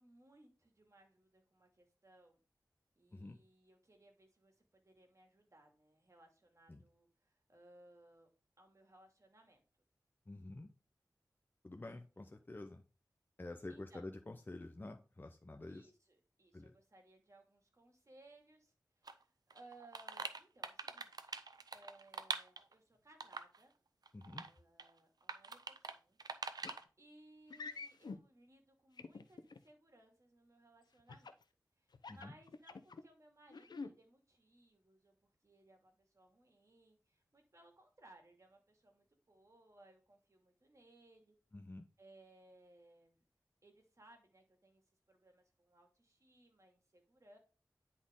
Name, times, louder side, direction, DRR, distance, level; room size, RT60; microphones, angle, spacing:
voice 1, 0.0-2.4 3.0-8.3 8.6-9.6 13.7-14.0 15.7-21.3 21.7-23.7 24.3-26.2 27.0-31.4 31.8-41.4 42.0-43.3 43.6-44.8 45.1-47.4, right 2 dB, 45° right, 3 dB, 2.3 m, -64 dB
voice 2, 10.3-10.7 11.6-12.8 13.4-15.9 16.5-16.7 24.1-24.4 32.1-32.4 41.5-41.9, left 2 dB, 30° left, 5 dB, 0.8 m, -49 dB
sound 1, 19.1-19.2 19.5-22.7 23.2-23.6 24.1-24.5 24.8-24.9 25.3-25.9 26.2-26.8, right 4 dB, 70° right, 0.6 m, -44 dB
sound 2, 26.6-26.8 27.5-28.2 29.0-29.6 31.1-31.4 31.9-33.0 33.5-33.9, left 4 dB, 80° left, 0.6 m, -47 dB
9.9 x 4.3 x 3.7 m, 0.34 s
wide cardioid pair, 60°, 7 cm